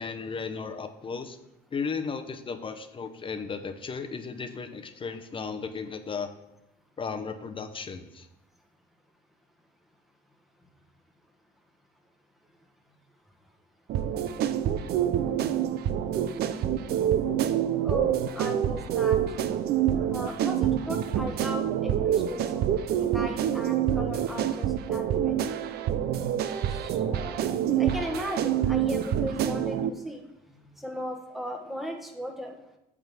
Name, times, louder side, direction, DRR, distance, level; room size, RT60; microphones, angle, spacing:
voice 1, 0.0-1.4 1.7-6.3 7.0-8.3, left 5 dB, 30° left, 8 dB, 0.7 m, -35 dB
sound 1, 13.9-29.9, right 10 dB, 70° right, 0.5 m, -27 dB
voice 2, 17.8-19.2 20.1-22.7 23.0-25.3 26.7-30.2 30.8-32.5, equal, ahead, 2 dB, 1.3 m, -37 dB
9.0 x 3.7 x 6.1 m, 0.86 s
cardioid pair, 110°, 17 cm